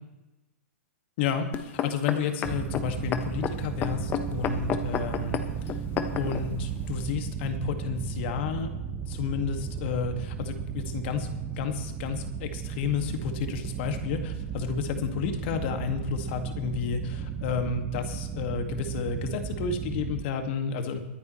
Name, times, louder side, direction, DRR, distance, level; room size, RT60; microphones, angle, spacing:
voice 1, 1.2-5.4 6.1-8.7 9.1-11.3 11.6-21.0, left 6 dB, 50° left, 6 dB, 2.0 m, -31 dB
sound 1, 1.5-6.4 7.1-7.2, left 7 dB, 25° left, 1.1 m, -31 dB
sound 2, 2.4-20.2, right 7 dB, 20° right, 1.4 m, -35 dB
23.5 x 9.7 x 3.2 m, 1.1 s
hypercardioid pair, 125°, 8 cm